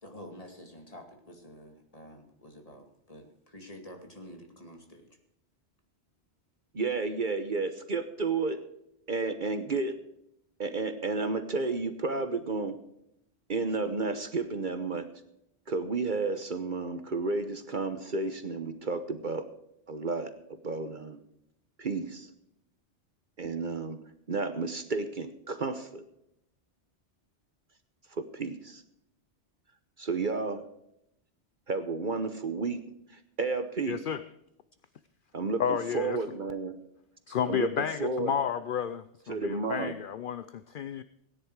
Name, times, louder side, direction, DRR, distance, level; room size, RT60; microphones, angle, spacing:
voice 1, 0.0-5.1, equal, 30° left, 3 dB, 2.4 m, -48 dB
voice 2, 6.7-8.6 9.1-10.0 10.6-12.8 13.5-15.1 15.7-19.5 19.9-21.2 21.8-22.3 23.4-24.0 24.3-26.0 28.1-28.8 30.0-30.6 31.7-32.8 33.4-34.0 35.3-36.8 37.4-38.3 39.3-40.0, right 3 dB, 45° right, 9 dB, 1.1 m, -32 dB
voice 3, 33.9-34.2 35.6-36.2 37.3-41.0, left 8 dB, 55° left, 13 dB, 0.7 m, -31 dB
17.0 x 10.5 x 4.7 m, 0.80 s
omnidirectional pair, 1.2 m